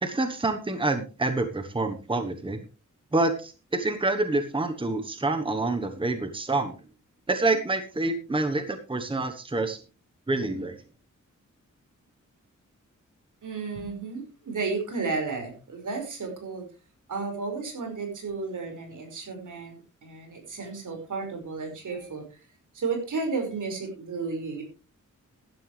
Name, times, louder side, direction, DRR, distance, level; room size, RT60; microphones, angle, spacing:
voice 1, 0.0-2.7 3.1-6.8 7.3-9.8 10.3-10.7, right 2 dB, 15° right, 7 dB, 1.2 m, -27 dB
voice 2, 13.4-16.7 17.1-22.2 22.7-24.6, right 4 dB, 75° right, 4 dB, 5.6 m, -33 dB
16.0 x 11.5 x 3.3 m, 0.33 s
wide cardioid pair, 150°, 31 cm